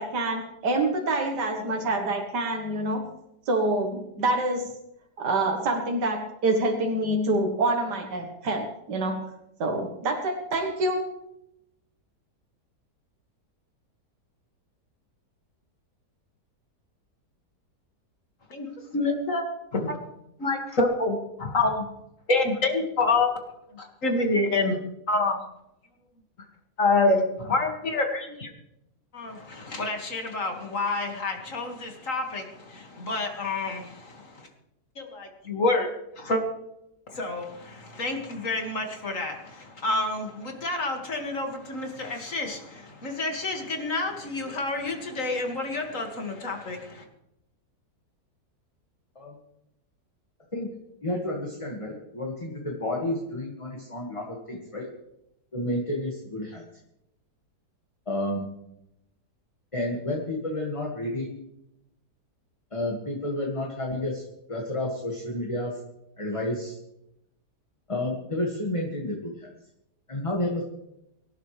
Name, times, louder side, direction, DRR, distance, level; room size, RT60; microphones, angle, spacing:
voice 1, 0.0-3.1 3.5-4.7 5.2-9.2 9.6-11.1, right 2 dB, 85° right, 2.2 m, -26 dB
voice 2, 18.5-19.4 19.7-20.0 20.4-21.9 22.3-23.3 23.7-24.8 25.1-25.4 26.4-26.5 26.8-28.5 29.1-34.5 35.0-35.9 36.2-36.4 37.1-47.0, left 2 dB, 50° left, 2.6 m, -28 dB
voice 3, 51.0-54.9 55.5-56.6 58.1-58.5 59.7-61.4 62.7-65.7 66.2-66.8 67.9-69.5 70.1-70.6, left 1 dB, 20° left, 2.0 m, -30 dB
25.0 x 12.0 x 3.4 m
omnidirectional pair, 1.8 m